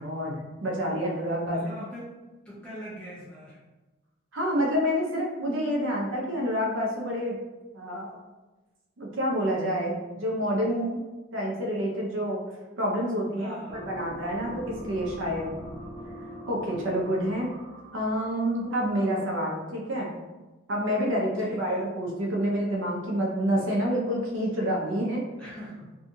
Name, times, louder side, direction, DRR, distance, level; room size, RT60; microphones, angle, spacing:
voice 1, 0.0-1.6 4.3-7.4 7.7-8.2 9.0-11.0 11.3-12.4 12.8-15.5 16.5-17.5 17.9-20.1 20.7-25.2, equal, 65° right, -2 dB, 0.6 m, -28 dB
voice 2, 1.4-3.6 13.4-14.0 21.4-21.9 25.4-25.9, equal, 5° left, -8 dB, 0.7 m, -43 dB
sound 1, 13.7-19.3, right 1 dB, 25° right, 0.3 m, -42 dB
2.7 x 2.3 x 2.7 m, 1.1 s
head